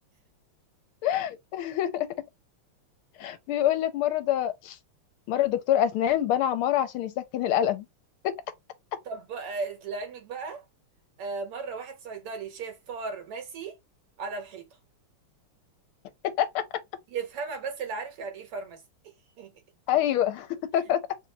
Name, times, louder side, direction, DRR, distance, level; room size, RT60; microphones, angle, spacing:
voice 1, 1.0-2.1 3.2-4.8 5.3-7.8 8.2-8.3 16.4-16.6 19.9-21.0, left 11 dB, 80° left, 1.5 m, -26 dB
voice 2, 9.1-10.6 11.2-13.8 14.2-14.7 17.1-18.8 19.4-19.5, right 4 dB, 85° right, 2.2 m, -36 dB
4.3 x 2.1 x 3.9 m
omnidirectional pair, 2.4 m